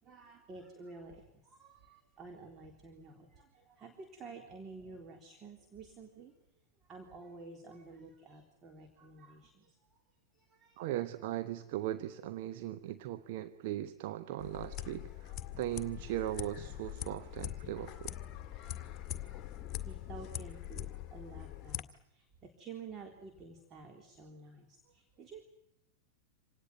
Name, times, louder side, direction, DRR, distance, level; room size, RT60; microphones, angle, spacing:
voice 1, 0.0-10.0 10.3-11.0 19.8-25.5, right 4 dB, 25° right, 3 dB, 3.7 m, -51 dB
voice 2, 10.8-18.1, right 13 dB, 50° right, 9 dB, 1.1 m, -38 dB
sound 1, 14.4-21.8, left 12 dB, 30° left, 2.0 m, -43 dB
27.0 x 19.0 x 9.5 m, 0.80 s
figure-of-eight pair, 90°, 0 cm